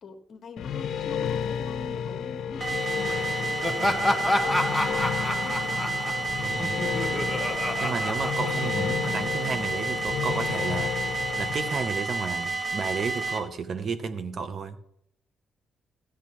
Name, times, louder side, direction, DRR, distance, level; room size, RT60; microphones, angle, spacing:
voice 1, 0.0-6.5 8.5-8.6, left 3 dB, 50° left, 5 dB, 1.3 m, -45 dB
sound 1, 0.6-11.9, left 8 dB, 65° left, 0.8 m, -32 dB
sound 2, 2.6-13.4, right 3 dB, 30° right, 1.3 m, -30 dB
Laughter, 3.6-9.1, left 1 dB, ahead, 1.1 m, -29 dB
voice 2, 6.4-6.8 7.8-10.9 11.4-14.8, right 5 dB, 50° right, 10 dB, 0.8 m, -32 dB
13.5 x 8.2 x 3.0 m, 0.73 s
cardioid pair, 90°, 0 cm